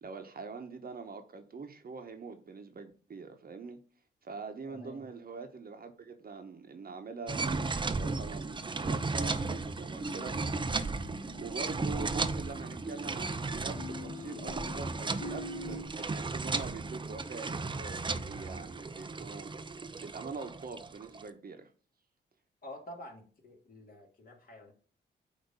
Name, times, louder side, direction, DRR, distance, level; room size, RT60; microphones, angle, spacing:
voice 1, 0.0-3.8 4.2-10.4 11.4-21.7, right 4 dB, 50° right, 1.1 m, -44 dB
voice 2, 4.7-5.1 22.6-24.7, left 1 dB, 50° left, 2.5 m, -48 dB
sound 1, 7.3-21.2, right 3 dB, 25° right, 0.6 m, -35 dB
sound 2, 10.0-15.9, left 3 dB, 80° left, 1.3 m, -46 dB
8.1 x 2.9 x 5.5 m
cardioid pair, 75°, 19 cm